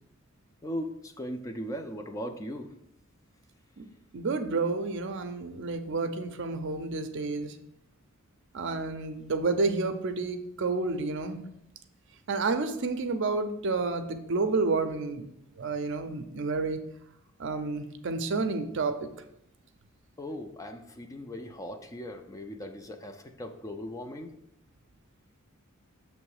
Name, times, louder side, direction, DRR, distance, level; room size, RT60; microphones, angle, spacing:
voice 1, 0.6-2.7 20.2-24.3, equal, 15° left, 5 dB, 0.4 m, -38 dB
voice 2, 4.1-7.5 8.5-11.5 12.3-15.2 15.6-16.8 17.4-19.0, right 3 dB, 60° right, 8 dB, 0.5 m, -30 dB
6.9 x 3.1 x 4.8 m, 0.78 s
head